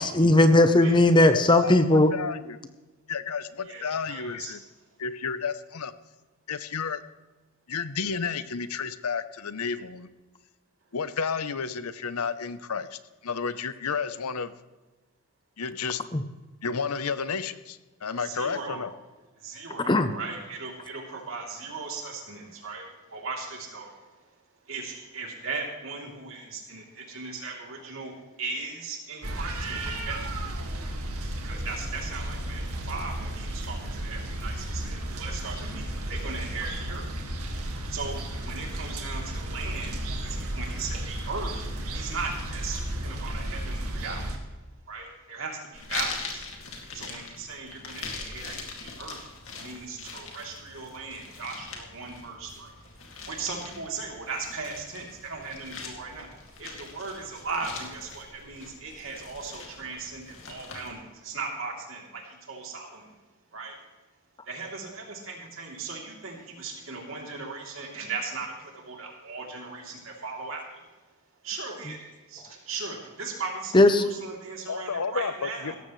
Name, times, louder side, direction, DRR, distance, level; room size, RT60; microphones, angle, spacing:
voice 1, 0.0-2.1 16.1-16.2 19.9-20.1 73.7-74.0, left 1 dB, 20° left, 9 dB, 0.6 m, -18 dB
voice 2, 0.7-1.0 3.6-4.6 18.2-18.9 19.4-24.3 24.6-30.5 31.3-37.4 37.9-44.3 44.9-46.5 46.9-49.3 49.6-63.2 63.5-63.8 64.5-71.0 71.4-75.8, right 4 dB, 60° right, 0 dB, 3.1 m, -38 dB
voice 3, 1.6-2.6 3.1-4.6 5.0-5.9 6.5-7.0 7.7-10.1 10.9-14.5 15.6-16.0 16.6-18.9 74.7-75.7, left 5 dB, 85° left, 13 dB, 0.8 m, -31 dB
sound 1, 29.2-44.4, right 1 dB, 80° right, 2.0 m, -33 dB
sound 2, 45.7-60.9, left 4 dB, 60° left, 2.4 m, -41 dB
17.0 x 14.5 x 3.2 m, 1.2 s
head